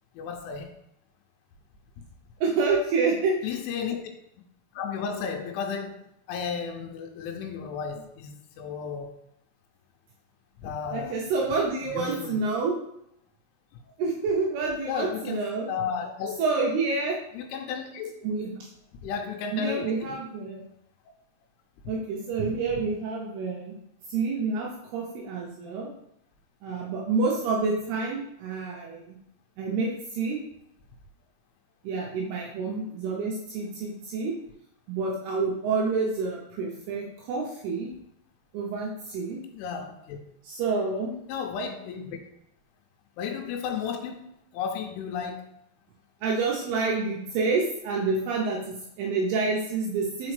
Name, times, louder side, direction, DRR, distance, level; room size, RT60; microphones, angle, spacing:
voice 1, 0.1-0.7 3.4-4.0 4.7-6.0 6.3-9.1 10.6-11.2 11.9-12.4 14.9-16.4 17.4-18.1 19.0-20.2 28.7-28.8 39.5-40.2 41.3-42.2 43.2-45.4, left 6 dB, 90° left, 3 dB, 3.1 m, -33 dB
voice 2, 2.4-3.4 10.9-12.8 14.0-15.7 16.4-17.2 18.2-18.6 19.5-20.6 21.9-23.7 24.1-25.9 26.6-29.2 29.6-30.4 31.8-34.3 34.9-37.9 38.5-39.4 40.4-41.1 46.2-50.3, right 4 dB, 80° right, -2 dB, 2.3 m, -28 dB
5.9 x 5.0 x 3.2 m, 0.78 s
omnidirectional pair, 5.4 m